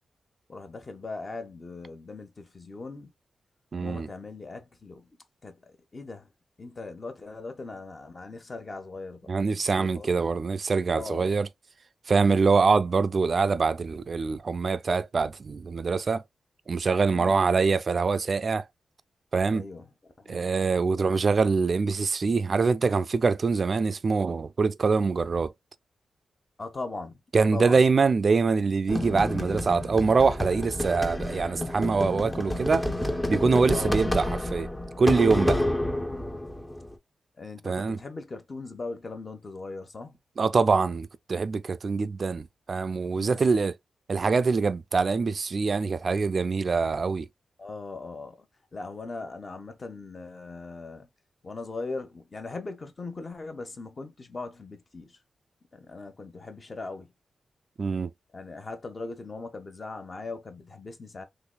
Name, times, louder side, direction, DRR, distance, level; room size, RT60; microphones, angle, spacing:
voice 1, 0.5-3.1 3.8-5.1 5.4-5.6 5.9-6.3 6.6-10.3 10.9-11.3 17.1-17.5 19.5-19.9 20.2-20.5 26.6-27.8 33.6-34.0 37.4-40.2 43.2-43.4 47.6-48.5 48.7-51.1 51.4-55.2 55.7-57.1 58.3-61.3, left 3 dB, 35° left, 1.0 m, -39 dB
voice 2, 3.7-4.1 9.3-11.5 12.1-16.2 16.7-18.6 19.3-19.7 20.3-25.5 27.3-32.9 33.3-34.7 35.0-35.6 37.6-38.0 40.4-43.8 44.1-47.3 57.8-58.1, right 4 dB, 50° right, 0.4 m, -24 dB
sound 1, 28.9-37.0, left 1 dB, 15° left, 0.7 m, -29 dB
3.9 x 3.1 x 2.2 m
cardioid pair, 85°, 0 cm